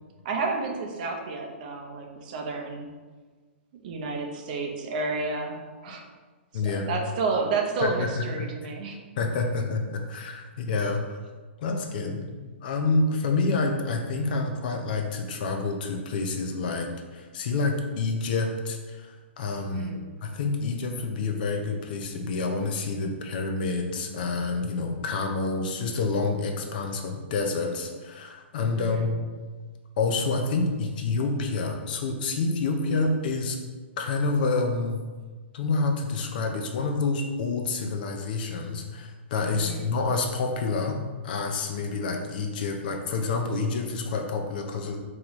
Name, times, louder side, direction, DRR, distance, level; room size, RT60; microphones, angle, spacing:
voice 1, 0.2-2.9 3.7-6.0 6.5-9.0 19.7-20.0 28.8-29.1 39.5-39.9, right 4 dB, 40° right, 2 dB, 0.6 m, -31 dB
voice 2, 6.5-7.0 7.8-8.2 9.2-11.2 11.6-12.3 12.6-19.9 20.2-29.2 30.0-33.6 34.0-35.0 35.5-41.0 41.2-45.0, left 3 dB, 45° left, 4 dB, 0.5 m, -28 dB
3.8 x 3.0 x 3.0 m, 1.4 s
hypercardioid pair, 155°, 7 cm